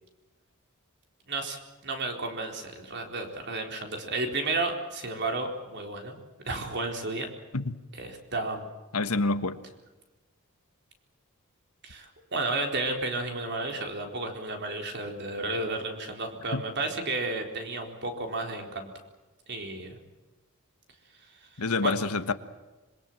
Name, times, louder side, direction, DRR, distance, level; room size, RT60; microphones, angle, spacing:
voice 1, 1.3-6.2 6.5-7.3 8.0-8.7 11.8-18.9 19.5-20.0 21.6-21.9, right 2 dB, 50° right, 4.2 m, -32 dB
voice 2, 8.9-9.6 16.5-16.6 21.6-22.3, left 3 dB, 80° left, 1.4 m, -27 dB
26.0 x 23.0 x 7.5 m
head